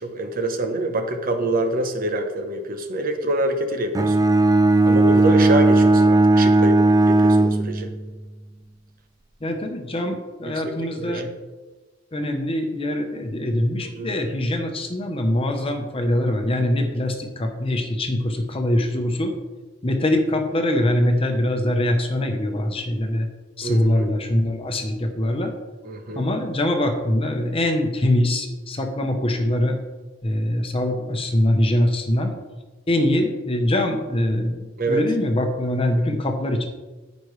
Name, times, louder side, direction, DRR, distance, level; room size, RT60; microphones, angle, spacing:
voice 1, 0.0-4.2 4.8-7.9 10.5-11.3 13.8-14.1 23.6-24.1 25.8-26.3 34.8-35.0, right 1 dB, 45° right, 6 dB, 0.9 m, -26 dB
Bowed string instrument, 3.9-8.2, right 2 dB, 20° right, 0.4 m, -16 dB
voice 2, 9.4-11.3 12.1-19.3 19.8-23.3 23.6-25.5 26.1-29.8 30.2-32.3 32.9-36.7, left 1 dB, 30° left, 5 dB, 0.9 m, -23 dB
14.0 x 5.3 x 3.3 m, 1.2 s
head